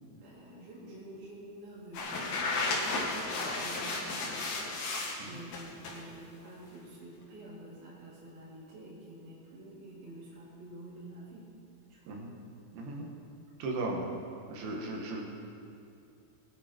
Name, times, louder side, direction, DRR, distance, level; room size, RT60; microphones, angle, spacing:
voice 1, 0.2-3.3 3.6-4.6 5.2-11.5 11.9-12.2, right 1 dB, 55° right, -8 dB, 4.9 m, -49 dB
sound 1, 1.9-5.1 5.5-6.0, left 3 dB, 60° left, 3.5 m, -33 dB
voice 2, 12.7-13.1 13.6-14.1 14.5-15.2, right 2 dB, 75° right, -1 dB, 4.1 m, -36 dB
22.0 x 11.0 x 4.6 m, 2.5 s
omnidirectional pair, 5.3 m